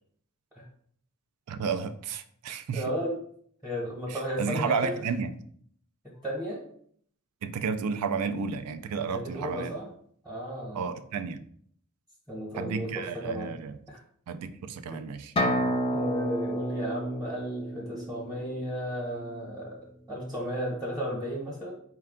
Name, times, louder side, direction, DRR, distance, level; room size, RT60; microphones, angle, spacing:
voice 1, 1.5-2.8 4.1-5.3 7.4-9.7 10.7-11.4 12.6-13.7 14.3-15.3, right 5 dB, 90° right, 11 dB, 0.4 m, -32 dB
voice 2, 2.7-3.1 3.6-4.9 6.2-6.6 9.1-9.9 10.2-10.9 12.3-13.5 13.9-14.0 14.9-15.0 15.9-19.8 20.1-21.7, equal, 5° right, -4 dB, 0.9 m, -34 dB
sound 1, 15.4-19.1, equal, 25° left, 0.4 m, -30 dB
4.4 x 2.2 x 3.6 m, 0.62 s
head